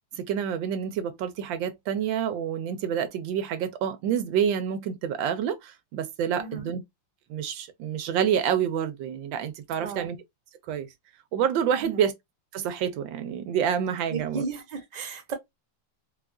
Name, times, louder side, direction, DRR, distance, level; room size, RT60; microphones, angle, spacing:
voice 1, 0.2-6.8 7.3-10.2 10.7-10.9 11.3-12.1 12.5-14.4, right 8 dB, 80° right, 1.4 m, -28 dB
voice 2, 6.4-6.7 9.8-10.1 11.7-12.0 14.1-15.3, right 4 dB, 30° right, 0.8 m, -35 dB
4.1 x 2.4 x 2.2 m
omnidirectional pair, 2.0 m